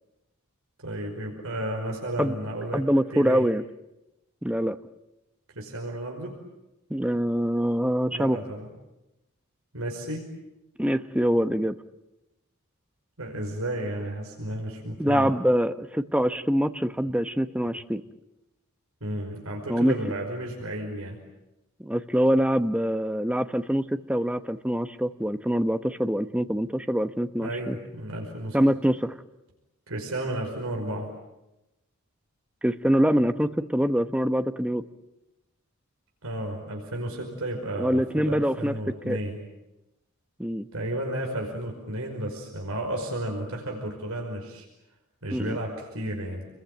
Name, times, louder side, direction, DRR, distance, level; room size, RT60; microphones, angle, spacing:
voice 1, 0.8-3.5 5.5-6.4 8.1-8.7 9.7-10.3 13.2-15.3 19.0-21.2 27.4-28.6 29.9-31.1 36.2-39.4 40.7-44.7 45.2-46.4, right 1 dB, 70° right, 0 dB, 5.4 m, -33 dB
voice 2, 2.7-3.6 4.4-4.8 6.9-8.4 10.8-11.8 15.0-18.0 19.7-19.9 21.8-27.8 28.5-29.1 32.6-34.8 37.8-38.8 39.1-39.2 40.4-40.7 45.3-45.6, equal, 5° right, 9 dB, 0.9 m, -24 dB
29.5 x 22.0 x 9.3 m, 0.96 s
head